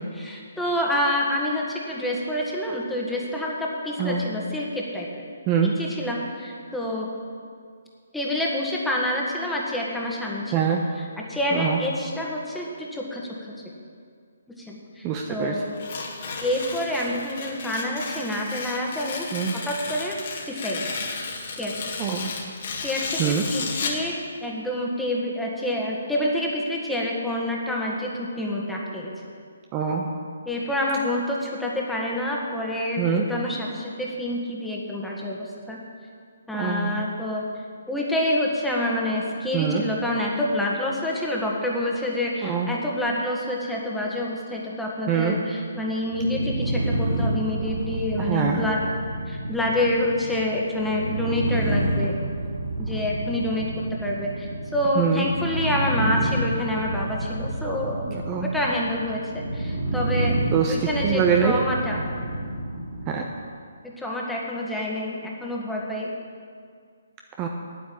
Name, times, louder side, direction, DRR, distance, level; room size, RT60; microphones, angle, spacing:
voice 1, 0.1-5.3 5.8-7.1 8.1-10.5 11.0-13.5 14.6-15.8 16.4-19.3 19.6-20.2 20.5-21.1 21.5-21.7 22.8-29.1 30.4-35.8 36.5-37.4 37.9-48.8 49.3-52.2 52.8-58.1 58.4-62.0 63.8-66.1, left 1 dB, 5° left, -3 dB, 1.8 m, -27 dB
voice 2, 10.5-10.8 11.5-11.8 15.0-15.6 19.3-19.5 22.0-22.3 23.2-23.4 29.7-30.1 33.0-33.3 36.5-36.9 39.5-39.8 42.4-42.7 45.1-45.4 48.2-48.7 55.0-55.3 58.0-58.5 60.5-60.7 61.0-61.6 63.1-63.2 67.4-67.5, right 7 dB, 25° right, 1 dB, 0.9 m, -24 dB
Tearing, 15.7-24.1, left 4 dB, 50° left, 2.2 m, -33 dB
sound 1, 46.0-63.3, right 1 dB, 45° right, 3.3 m, -29 dB
9.4 x 9.3 x 7.6 m, 2.1 s
figure-of-eight pair, 140°, 0 cm